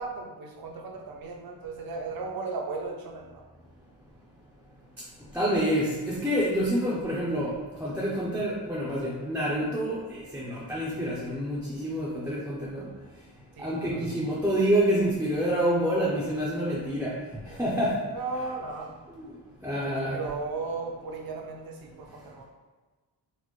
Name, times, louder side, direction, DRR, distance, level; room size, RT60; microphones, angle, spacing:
voice 1, 0.0-3.5 13.6-14.1 18.1-18.9 19.8-22.4, right 3 dB, 55° right, 1 dB, 0.6 m, -36 dB
voice 2, 5.3-7.5 7.8-12.9 13.6-17.1 17.6-18.0 19.1-19.3 19.6-20.2, equal, 5° right, -7 dB, 0.4 m, -27 dB
4.2 x 2.1 x 3.0 m, 1.3 s
wide cardioid pair, 145°, 43 cm